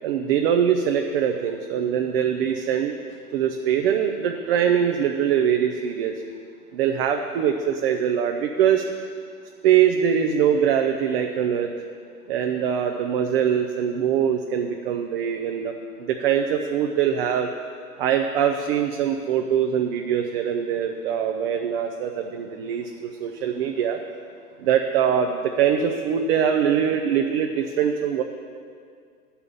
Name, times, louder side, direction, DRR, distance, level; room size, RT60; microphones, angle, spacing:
voice 1, 0.0-2.9 3.3-6.1 6.7-8.8 9.6-11.7 12.3-15.7 16.0-17.5 18.0-24.0 24.6-28.2, right 8 dB, 40° right, 4 dB, 0.6 m, -23 dB
11.0 x 5.7 x 6.9 m, 2.2 s
hypercardioid pair, 120°, 47 cm